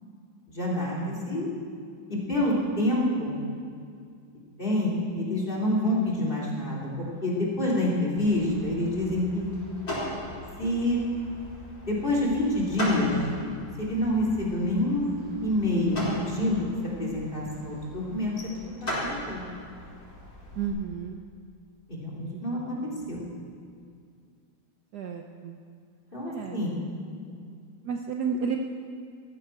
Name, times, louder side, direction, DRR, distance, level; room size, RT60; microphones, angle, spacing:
voice 1, 0.5-1.5 2.1-3.4 4.6-9.5 10.6-11.0 11.8-13.1 13.8-15.1 15.4-16.7 17.0-18.3 18.8-19.4 21.9-23.2 26.1-26.8, left 1 dB, 25° left, -4 dB, 2.9 m, -27 dB
Car lock and unlock, 8.1-20.7, equal, 45° left, 5.0 m, -38 dB
voice 2, 20.6-21.2 22.3-22.4 24.9-25.6 26.3-26.6 27.5-27.6 27.8-28.6, right 6 dB, 65° right, 3 dB, 1.2 m, -32 dB
19.0 x 14.5 x 4.5 m, 2.2 s
omnidirectional pair, 2.2 m